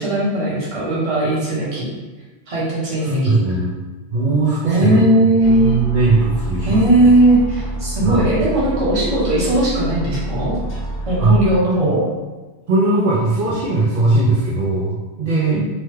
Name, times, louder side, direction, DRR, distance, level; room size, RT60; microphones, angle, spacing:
voice 1, 0.0-1.9 2.5-3.4 4.6-5.8 6.6-10.6 11.1-12.0 15.5-15.6, right 1 dB, 35° right, -7 dB, 0.9 m, -17 dB
voice 2, 3.0-3.8 4.1-5.0 5.5-7.1 8.0-8.3 11.2-11.3 11.8-11.9 12.7-15.6, right 3 dB, 60° right, -7 dB, 0.7 m, -19 dB
sound 1, 5.4-11.6, right 1 dB, 55° left, 1.2 m, -27 dB
3.0 x 2.2 x 3.1 m, 1.2 s
omnidirectional pair, 1.1 m